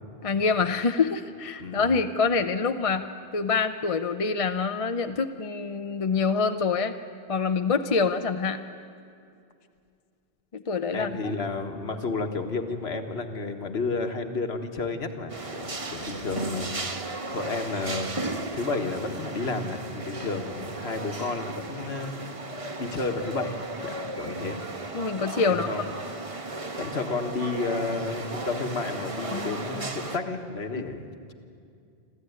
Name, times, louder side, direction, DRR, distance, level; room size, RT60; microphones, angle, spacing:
voice 1, 0.2-3.0 3.3-6.9 7.3-8.6 10.5-11.1 24.9-25.7 29.3-29.9 30.8-30.9, left 4 dB, 40° left, 8 dB, 0.6 m, -26 dB
voice 2, 1.6-1.9 10.9-16.7 17.3-18.1 18.5-22.1 22.8-24.6 25.5-25.9 26.8-31.0, left 3 dB, 75° left, 6 dB, 1.7 m, -31 dB
sound 1, 15.3-30.2, right 2 dB, 30° right, 1.1 m, -35 dB
26.5 x 14.0 x 9.5 m, 2.4 s
omnidirectional pair, 1.1 m